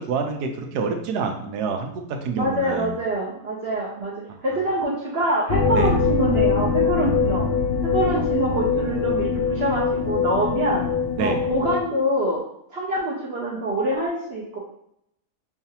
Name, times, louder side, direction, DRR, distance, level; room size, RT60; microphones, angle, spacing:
voice 1, 0.0-1.9 2.2-2.9 5.7-5.9 11.2-11.4, right 5 dB, 90° right, 4 dB, 1.2 m, -27 dB
voice 2, 2.3-4.1 4.4-7.4 7.8-10.8 11.2-12.4 12.7-14.6, right 1 dB, 55° right, -3 dB, 0.7 m, -25 dB
sound 1, 5.5-11.8, left 5 dB, 85° left, 1.2 m, -23 dB
5.6 x 2.4 x 2.8 m, 0.74 s
omnidirectional pair, 1.7 m